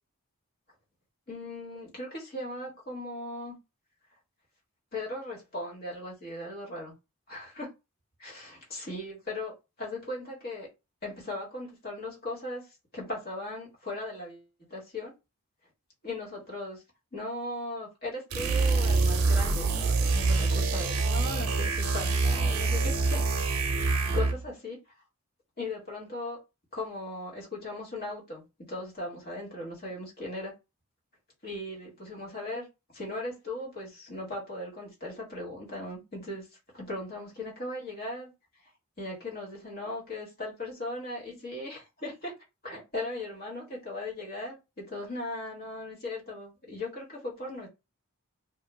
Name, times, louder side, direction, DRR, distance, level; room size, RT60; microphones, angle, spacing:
voice 1, 1.3-3.6 4.9-6.9 7.3-7.7 8.2-10.7 11.0-12.7 12.9-14.4 14.7-15.1 16.0-16.8 17.1-23.2 23.8-24.8 25.6-26.4 26.7-30.5 31.4-32.7 32.9-36.5 36.7-38.3 39.0-42.3 42.6-47.7, left 2 dB, 45° left, 1.4 m, -38 dB
sound 1, 18.3-24.4, right 3 dB, 80° right, 0.6 m, -26 dB
2.4 x 2.4 x 3.1 m
head